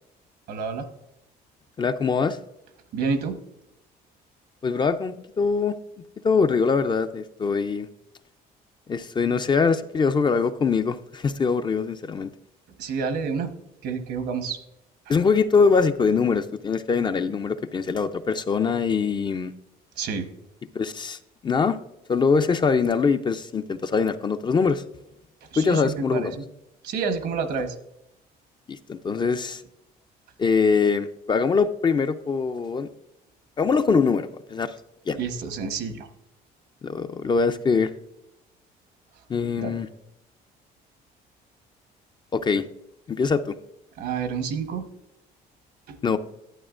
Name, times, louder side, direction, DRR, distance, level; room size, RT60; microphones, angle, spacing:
voice 1, 0.5-0.9 2.9-3.4 12.8-13.5 13.8-14.6 20.0-20.3 25.5-26.4 26.8-27.7 35.2-36.1 39.6-39.8 44.0-44.9 45.9-46.0, right 5 dB, 75° right, 8 dB, 1.1 m, -29 dB
voice 2, 1.8-2.4 4.6-5.7 6.2-7.9 8.9-12.3 15.1-19.5 20.7-21.8 22.1-24.8 25.6-26.4 28.7-29.6 30.4-32.9 33.6-34.7 35.1-35.2 36.8-37.9 39.3-39.9 42.3-42.7 43.1-43.6 46.0-46.2, left 5 dB, 25° left, 10 dB, 0.4 m, -23 dB
11.0 x 8.5 x 2.5 m, 0.85 s
cardioid pair, 110°, 17 cm